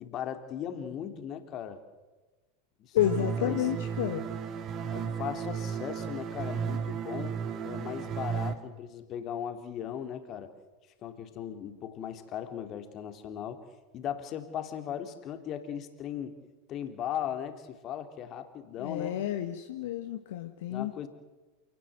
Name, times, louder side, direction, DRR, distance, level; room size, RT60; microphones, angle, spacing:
voice 1, 0.0-1.8 2.8-3.7 4.9-7.4 7.6-10.5 11.0-13.6 13.9-16.4 16.7-19.2 20.7-21.1, left 9 dB, 40° left, 7 dB, 3.1 m, -38 dB
voice 2, 2.9-4.3 18.8-20.9, left 11 dB, 65° left, 6 dB, 1.5 m, -30 dB
sound 1, 3.0-8.5, right 7 dB, 40° right, 2.5 m, -34 dB
28.0 x 18.5 x 7.9 m, 1.2 s
figure-of-eight pair, 85°, 0 cm